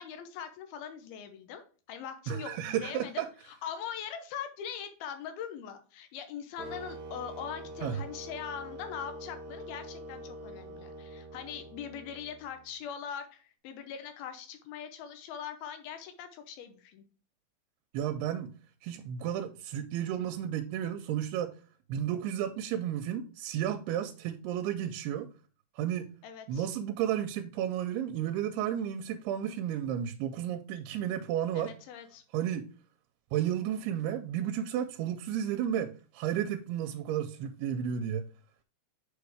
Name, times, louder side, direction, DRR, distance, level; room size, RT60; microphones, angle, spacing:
voice 1, 0.0-17.0 26.2-26.6 31.5-32.2, left 8 dB, 75° left, 2.6 m, -42 dB
voice 2, 2.3-3.3 7.8-8.0 17.9-18.5 18.8-21.5 21.9-25.3 25.8-26.1 26.5-31.7 32.3-32.7 33.3-38.3, right 10 dB, 90° right, 2.6 m, -32 dB
sound 1, 6.6-12.7, right 1 dB, 60° right, 2.0 m, -45 dB
6.6 x 4.8 x 3.4 m
omnidirectional pair, 4.5 m